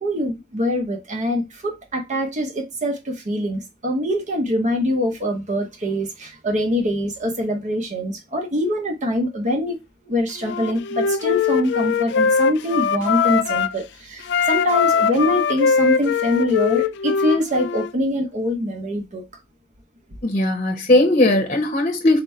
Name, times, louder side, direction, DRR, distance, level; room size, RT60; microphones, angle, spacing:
voice 1, 0.0-9.8 10.0-19.2, equal, 40° right, 0.8 m, -24 dB
Wind instrument woodwind instrument, 10.4-13.8 14.2-17.9, left 6 dB, 60° left, 0.4 m, -21 dB
voice 2, 20.2-22.2, left 1 dB, 35° left, 0.8 m, -18 dB
4.0 x 2.1 x 4.3 m
head